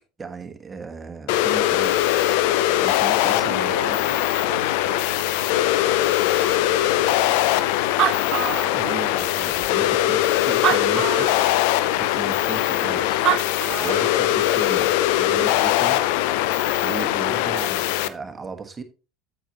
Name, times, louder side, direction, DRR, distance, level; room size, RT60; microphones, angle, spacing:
voice 1, 0.2-2.0 2.8-4.0 8.7-11.3 12.0-14.9 15.2-16.0 16.8-18.8, right 4 dB, 20° right, 1.5 m, -35 dB
sound 1, 1.3-18.1, left 14 dB, 60° left, 0.5 m, -21 dB
voice 2, 3.2-6.4 6.8-8.1, left 2 dB, 90° left, 0.8 m, -37 dB
Animal, 7.6-7.7 7.8-9.2 9.9-10.0 10.5-11.5 13.0-13.1 13.3-14.2, right 12 dB, 45° right, 0.7 m, -25 dB
8.8 x 8.3 x 2.9 m
figure-of-eight pair, 70°, 0 cm